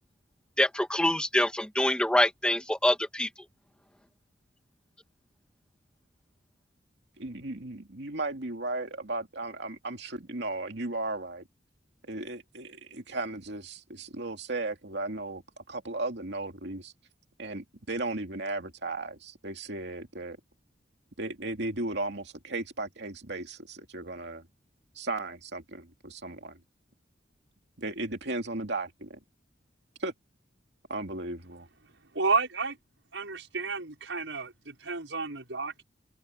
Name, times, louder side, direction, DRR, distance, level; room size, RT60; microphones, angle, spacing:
voice 1, 0.6-3.3, left 1 dB, 5° left, 2.3 m, -25 dB
voice 2, 7.2-11.4 12.0-16.9 17.4-20.4 21.2-24.5 24.9-26.6 27.8-29.2 30.0-30.1 30.9-31.7, right 2 dB, 70° right, 2.6 m, -35 dB
voice 3, 32.1-32.8 33.1-35.8, right 4 dB, 90° right, 5.9 m, -31 dB
open air
head